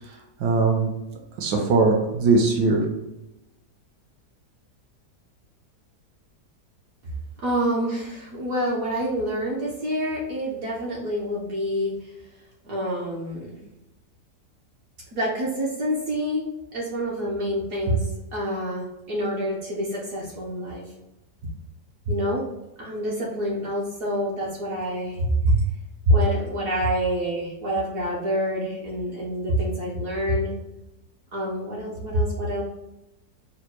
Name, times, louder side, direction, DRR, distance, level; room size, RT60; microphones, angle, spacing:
voice 1, 0.4-0.9 1.4-2.8, right 3 dB, 80° right, 2 dB, 1.4 m, -20 dB
voice 2, 7.4-12.1 12.6-13.6 15.1-16.4 16.7-20.8 22.0-22.4 22.8-25.6 26.1-30.5 31.3-32.6, equal, 60° right, -5 dB, 1.1 m, -26 dB
3.9 x 2.1 x 4.4 m, 0.94 s
omnidirectional pair, 1.8 m